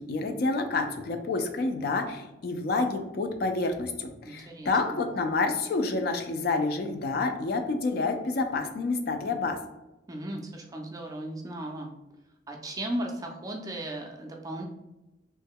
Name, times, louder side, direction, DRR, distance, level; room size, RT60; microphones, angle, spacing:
voice 1, 0.0-9.6, left 3 dB, 55° left, 6 dB, 0.4 m, -28 dB
voice 2, 4.2-5.0 10.1-11.9 12.5-14.6, right 1 dB, 20° right, 1 dB, 0.3 m, -36 dB
3.1 x 2.1 x 3.5 m, 0.96 s
head